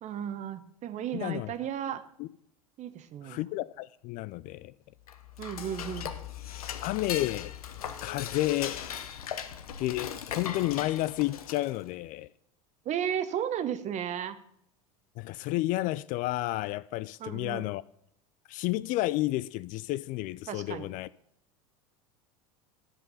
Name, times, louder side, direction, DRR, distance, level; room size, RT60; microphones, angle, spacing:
voice 1, 0.0-2.0 2.8-3.5 5.4-6.2 12.8-14.4 17.2-17.7 20.5-20.9, right 9 dB, 40° right, 1.1 m, -34 dB
voice 2, 1.1-1.5 2.2-2.3 3.2-4.7 6.8-7.5 8.0-8.8 9.8-12.3 15.2-17.8 18.5-21.1, left 17 dB, 45° left, 0.4 m, -31 dB
Dishes pots and pans / Cutlery silverware, 5.0-11.9, left 9 dB, 85° left, 0.8 m, -39 dB
10.5 x 7.6 x 5.5 m
hypercardioid pair, 85°, 18 cm